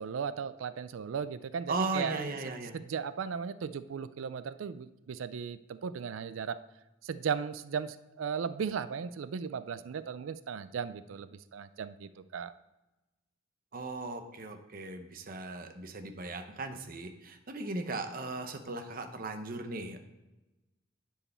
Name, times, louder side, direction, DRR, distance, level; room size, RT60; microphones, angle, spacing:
voice 1, 0.0-6.6 7.0-12.5, right 6 dB, 80° right, 14 dB, 0.4 m, -36 dB
voice 2, 1.7-2.7 13.7-20.0, right 3 dB, 45° right, 7 dB, 0.8 m, -37 dB
9.9 x 4.7 x 4.3 m, 1.0 s
head